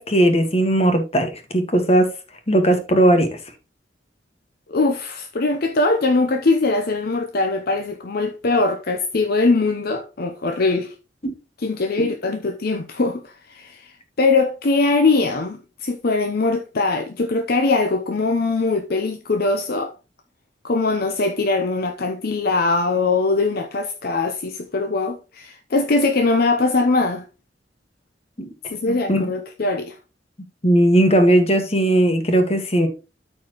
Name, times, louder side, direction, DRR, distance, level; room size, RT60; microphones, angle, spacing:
voice 1, 0.0-2.1 2.5-3.3 11.2-11.3 12.0-12.1 28.4-28.5 28.9-29.3 30.6-32.9, right 1 dB, 35° left, 1.6 m, -17 dB
voice 2, 4.7-10.9 11.6-19.9 20.6-27.2 28.7-30.0, left 3 dB, 55° left, 0.7 m, -21 dB
13.0 x 4.5 x 3.0 m
head